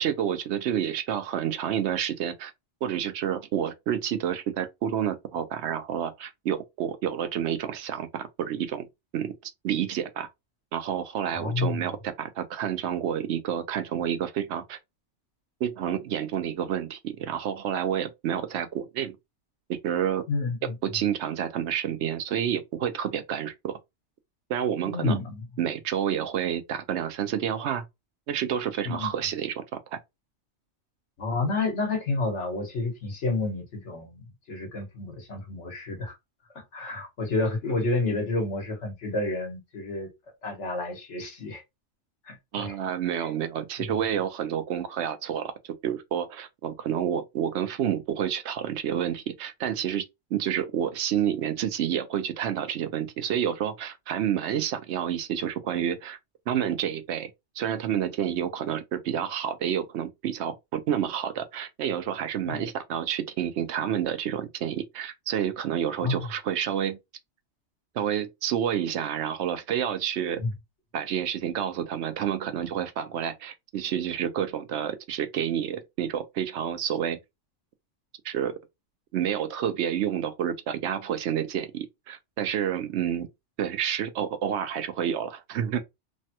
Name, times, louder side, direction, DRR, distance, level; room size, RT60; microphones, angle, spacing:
voice 1, 0.0-2.5 2.8-8.9 9.1-10.3 10.7-14.8 15.6-19.1 19.7-20.2 20.8-23.8 24.5-25.2 25.6-27.8 28.3-30.0 42.5-45.5 45.8-50.0 50.3-56.2 56.5-57.3 57.6-67.0 67.9-70.4 70.9-77.2 78.2-78.5 79.1-83.3 83.6-85.8, right 9 dB, 75° right, 0.9 m, -29 dB
voice 2, 11.3-11.9 20.3-20.7 24.8-25.4 28.8-29.1 31.2-36.1 36.5-40.1 40.4-41.6 42.3-42.7 43.2-43.3 43.8-43.9 62.5-62.7 66.0-66.3 70.4-70.5, left 3 dB, 85° left, 1.4 m, -30 dB
3.3 x 2.2 x 2.7 m
omnidirectional pair, 1.2 m